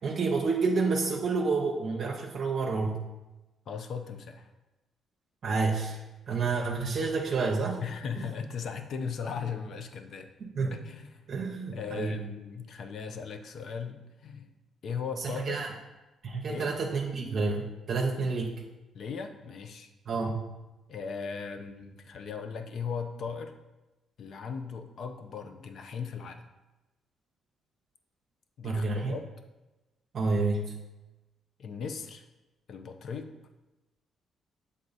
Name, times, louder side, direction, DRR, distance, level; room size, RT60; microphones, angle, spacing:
voice 1, 0.0-3.0 5.4-6.0 6.3-7.8 10.6-10.8 11.3-12.2 15.2-15.7 16.2-18.6 20.1-20.4 28.6-29.2 30.1-30.7, right 4 dB, 55° right, 0 dB, 0.7 m, -29 dB
voice 2, 3.7-4.5 7.8-10.3 10.7-14.5 14.8-15.6 16.5-16.7 18.9-19.9 20.9-23.5 24.2-26.5 28.6-29.3 31.6-32.2 32.7-33.3, left 6 dB, 60° left, 7 dB, 0.6 m, -38 dB
7.6 x 3.7 x 4.0 m, 1.1 s
cardioid pair, 90°, 0 cm